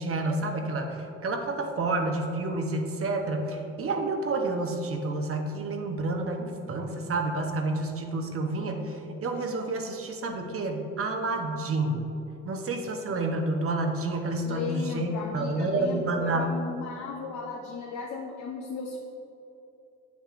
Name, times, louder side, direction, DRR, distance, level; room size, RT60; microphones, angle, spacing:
voice 1, 0.0-12.0 12.4-16.5, right 2 dB, 50° right, 4 dB, 0.9 m, -29 dB
voice 2, 14.4-19.0, left 5 dB, 70° left, -1 dB, 0.8 m, -36 dB
8.2 x 7.1 x 2.5 m, 2.9 s
cardioid pair, 90°, 30 cm